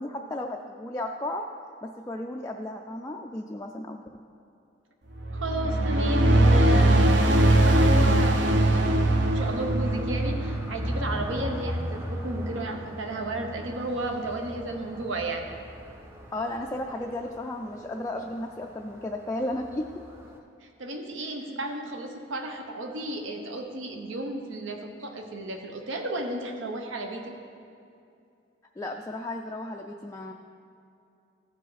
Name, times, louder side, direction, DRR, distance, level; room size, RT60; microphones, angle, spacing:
voice 1, 0.0-1.5 1.8-4.0 16.3-19.9 28.8-30.3, left 1 dB, 15° left, 1 dB, 0.3 m, -34 dB
sound 1, 5.2-11.8, right 1 dB, 60° right, 0.6 m, -21 dB
voice 2, 5.3-15.5 20.6-27.3, right 1 dB, 75° right, 4 dB, 1.0 m, -33 dB
sound 2, 6.3-20.4, equal, 15° right, 0.7 m, -39 dB
15.0 x 5.0 x 4.0 m, 2.6 s
head